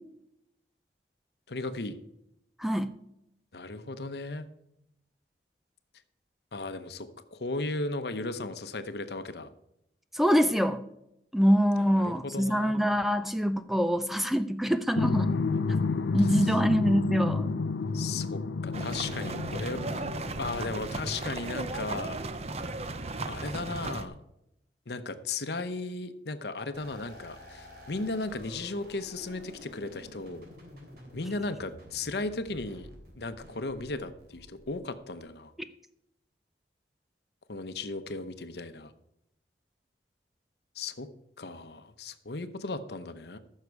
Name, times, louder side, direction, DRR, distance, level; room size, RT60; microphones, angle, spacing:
voice 1, 1.5-2.0 3.5-4.5 6.5-9.5 11.9-12.8 16.2-16.5 17.9-20.0 20.4-22.2 23.3-24.1 24.9-30.5 31.1-32.9 33.2-35.5 37.5-38.9 40.7-41.1 41.4-43.4, left 3 dB, 65° left, 10 dB, 0.8 m, -36 dB
voice 2, 2.6-3.0 10.1-10.9 11.3-15.3 16.1-17.5, equal, ahead, 10 dB, 0.4 m, -25 dB
sound 1, 14.9-21.5, left 4 dB, 90° left, 0.5 m, -30 dB
sound 2, 18.7-24.0, right 2 dB, 35° right, 0.7 m, -36 dB
sound 3, 26.7-35.2, equal, 55° right, 3.2 m, -50 dB
14.5 x 6.6 x 4.7 m, 0.82 s
head